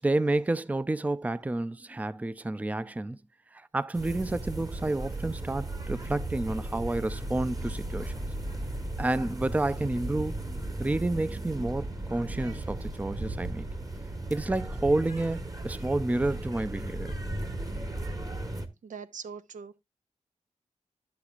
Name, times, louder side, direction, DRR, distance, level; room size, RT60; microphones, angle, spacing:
voice 1, 0.0-3.2 3.5-8.1 9.0-10.3 10.8-13.7 14.3-17.1, right 2 dB, 10° right, 0.4 m, -30 dB
sound 1, 3.9-18.7, right 1 dB, 30° right, 1.3 m, -36 dB
voice 2, 18.8-19.8, right 6 dB, 85° right, 0.6 m, -42 dB
11.5 x 7.1 x 2.4 m
wide cardioid pair, 80°, 13 cm